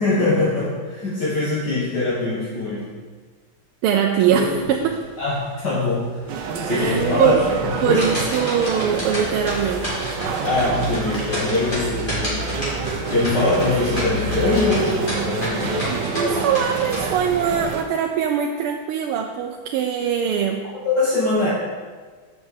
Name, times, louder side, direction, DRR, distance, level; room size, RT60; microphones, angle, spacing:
voice 1, 0.0-2.9 5.2-6.0 6.3-7.4 7.8-8.0 10.4-12.5 13.1-15.8 20.9-21.5, left 2 dB, 55° left, -7 dB, 2.0 m, -22 dB
voice 2, 3.8-4.9 6.7-7.4 7.8-10.1 16.2-20.6, right 8 dB, 85° right, 3 dB, 1.5 m, -22 dB
sound 1, 4.2-4.9 5.3-5.4 5.9-6.0 6.6-17.0, equal, 25° left, 3.1 m, -29 dB
sound 2, 6.3-17.8, right 4 dB, 65° right, 1.4 m, -27 dB
6.6 x 5.9 x 7.4 m, 1.5 s
omnidirectional pair, 2.4 m